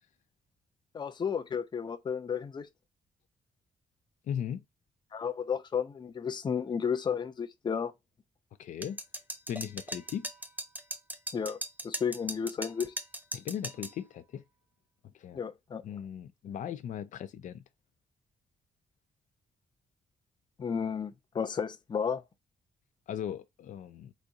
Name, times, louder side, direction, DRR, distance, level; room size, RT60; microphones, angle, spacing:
voice 1, 0.9-2.7 5.1-7.9 11.3-11.6 11.8-12.9 15.3-16.0 20.6-22.2, left 6 dB, 35° left, 0.6 m, -33 dB
voice 2, 4.3-4.6 8.6-9.0 9.5-10.3 13.3-14.4 15.1-15.4 15.8-17.6 23.1-24.1, left 9 dB, 75° left, 0.5 m, -38 dB
sound 1, 8.8-14.0, right 1 dB, 15° right, 0.8 m, -39 dB
4.2 x 2.5 x 4.7 m
cardioid pair, 115°, 13 cm